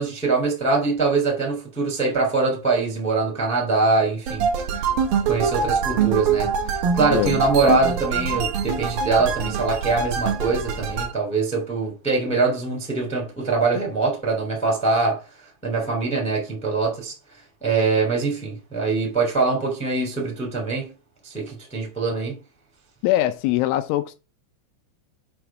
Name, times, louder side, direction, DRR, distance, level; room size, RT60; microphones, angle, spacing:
voice 1, 0.0-4.4 4.7-4.9 5.2-15.2 15.6-17.1 17.6-20.9 21.2-22.4, right 3 dB, 5° left, 0.9 m, -23 dB
sound 1, 4.3-11.1, right 6 dB, 70° right, 2.2 m, -24 dB
voice 2, 7.1-7.8 23.0-24.2, left 14 dB, 85° left, 2.8 m, -23 dB
7.7 x 3.3 x 6.0 m
omnidirectional pair, 5.8 m